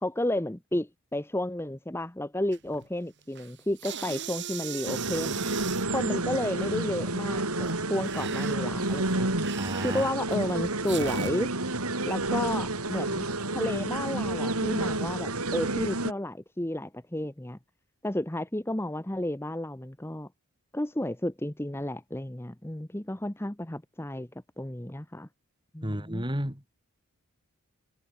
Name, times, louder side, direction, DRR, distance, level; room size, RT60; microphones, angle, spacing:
voice 1, 0.0-5.4 5.9-9.3 9.8-11.5 12.1-13.3 13.5-17.6 18.0-20.3 20.7-24.3 24.6-25.3 25.7-26.2, left 1 dB, 10° left, 1.0 m, -32 dB
sound 1, 2.5-2.9 3.2-5.9 7.5-11.3, right 7 dB, 50° right, 3.0 m, -38 dB
sound 2, 4.9-16.1, right 2 dB, 80° right, 5.7 m, -30 dB
voice 2, 9.6-10.1 25.8-26.6, right 1 dB, 20° right, 4.4 m, -32 dB
head